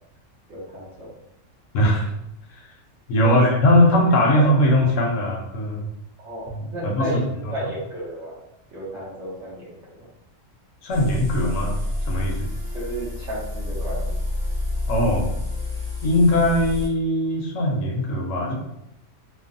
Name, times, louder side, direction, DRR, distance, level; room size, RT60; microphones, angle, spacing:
voice 1, 0.5-1.1 3.2-3.4 4.3-4.5 6.2-7.3 7.5-8.4 8.7-10.1 12.7-14.2, right 1 dB, 65° right, -6 dB, 1.3 m, -32 dB
voice 2, 1.7-2.1 2.6-2.7 3.1-5.9 6.5-7.1 10.8-11.8 12.0-12.4 14.9-15.3 16.0-18.5, left 1 dB, 75° left, 0 dB, 0.9 m, -20 dB
sound 1, 10.9-16.9, left 2 dB, 35° right, 1.3 m, -28 dB
3.1 x 2.1 x 2.5 m, 0.82 s
omnidirectional pair, 1.4 m